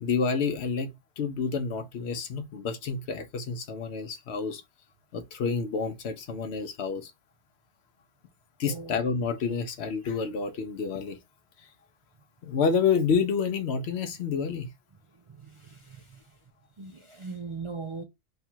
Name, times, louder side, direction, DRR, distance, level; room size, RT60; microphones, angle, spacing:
voice 1, 0.0-4.6 5.1-7.1 8.6-11.2 12.4-14.7, left 5 dB, 80° left, 0.9 m, -29 dB
voice 2, 8.6-9.0 15.4-16.2 16.8-18.0, right 4 dB, 45° right, 0.4 m, -39 dB
3.4 x 2.4 x 4.3 m
omnidirectional pair, 1.1 m